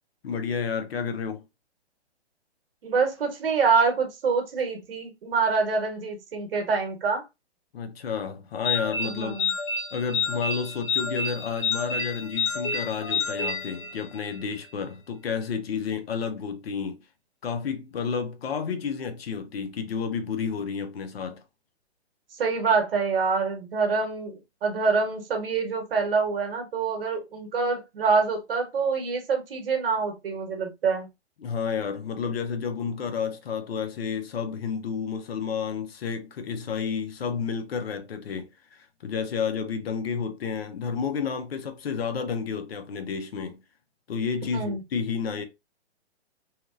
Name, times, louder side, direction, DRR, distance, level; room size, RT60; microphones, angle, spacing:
voice 1, 0.2-1.4 7.7-9.4 9.9-17.0 17.4-21.4 31.4-43.6 44.1-45.4, left 6 dB, 65° left, 0.7 m, -31 dB
voice 2, 2.8-7.2 9.0-9.5 22.4-31.1 44.5-44.8, right 4 dB, 60° right, 1.1 m, -26 dB
sound 1, 8.6-14.4, left 4 dB, 20° left, 0.8 m, -29 dB
2.8 x 2.4 x 2.4 m
hypercardioid pair, 130°, 33 cm